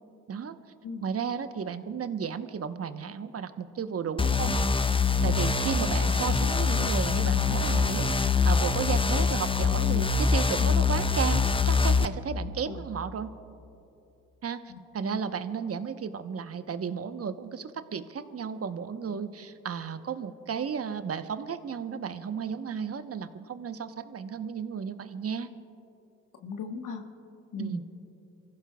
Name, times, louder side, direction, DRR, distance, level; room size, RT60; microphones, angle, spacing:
voice 1, 1.0-4.6 5.2-8.1 8.4-13.3 14.4-25.5 27.6-27.8, right 7 dB, 40° right, 10 dB, 1.0 m, -34 dB
sound 1, 4.2-12.1, left 4 dB, 15° left, 0.7 m, -24 dB
voice 2, 14.7-15.2 26.4-27.0 27.5-27.8, left 5 dB, 60° left, 5 dB, 1.4 m, -38 dB
28.5 x 15.0 x 2.3 m, 2.8 s
hypercardioid pair, 45°, 35 cm